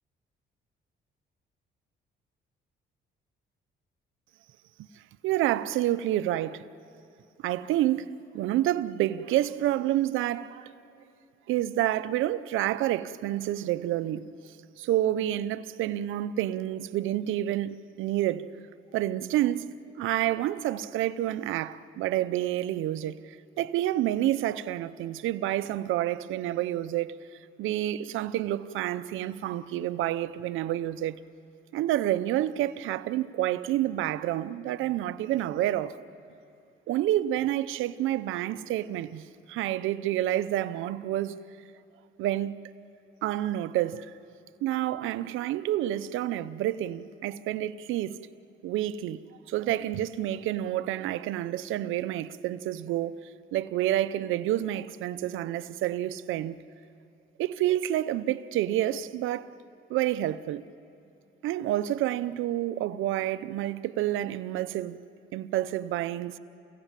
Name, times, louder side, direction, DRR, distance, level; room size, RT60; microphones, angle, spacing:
voice 1, 5.2-6.6 7.4-10.7 11.5-14.3 14.8-18.5 18.9-23.2 23.6-27.2 27.6-31.2 31.7-36.0 36.9-41.4 42.2-42.6 43.2-44.1 44.6-48.2 48.6-49.2 49.5-56.6 57.4-59.5 59.9-60.6 61.4-65.0 65.3-66.4, right 13 dB, 90° right, 0.7 m, -29 dB
29.5 x 17.0 x 7.5 m
cardioid pair, 90°, 20 cm